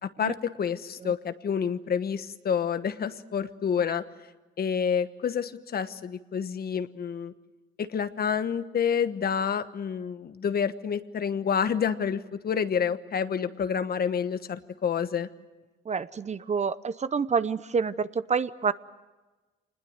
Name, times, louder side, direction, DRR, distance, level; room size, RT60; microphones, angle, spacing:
voice 1, 0.0-4.0 4.6-7.3 7.8-15.3, left 7 dB, 50° left, 11 dB, 1.2 m, -28 dB
voice 2, 15.9-18.7, right 5 dB, 35° right, 15 dB, 0.7 m, -28 dB
26.0 x 20.5 x 7.9 m, 1.2 s
cardioid pair, 90°, 20 cm